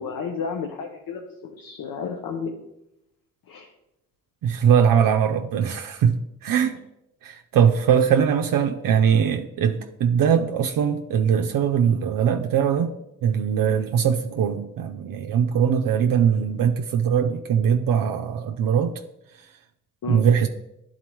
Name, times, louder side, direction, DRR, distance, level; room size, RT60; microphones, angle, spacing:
voice 1, 0.0-2.5 3.5-3.7 8.9-9.0 20.0-20.2, left 4 dB, 80° left, 2 dB, 0.7 m, -32 dB
voice 2, 4.4-6.2 6.4-6.8 7.2-12.9 13.2-18.9 20.1-20.5, right 8 dB, 75° right, 5 dB, 0.5 m, -21 dB
11.0 x 4.0 x 3.0 m, 0.85 s
supercardioid pair, 45°, 34 cm